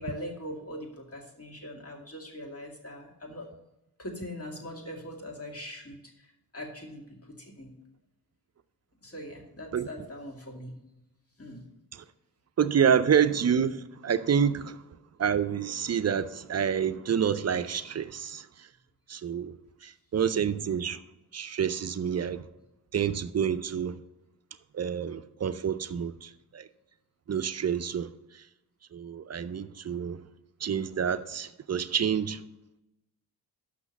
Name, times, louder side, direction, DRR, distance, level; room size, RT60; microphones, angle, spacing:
voice 1, 0.0-3.5 4.0-7.7 9.0-10.7 11.4-11.6, left 1 dB, 35° left, 2.2 m, -41 dB
voice 2, 12.6-14.8 15.2-18.7 19.1-19.6 19.8-21.0 21.3-22.4 22.9-24.0 24.7-26.7 27.3-28.1 28.9-30.2 30.6-32.4, right 8 dB, 40° right, 0.5 m, -28 dB
6.2 x 6.0 x 7.0 m
cardioid pair, 80°, 39 cm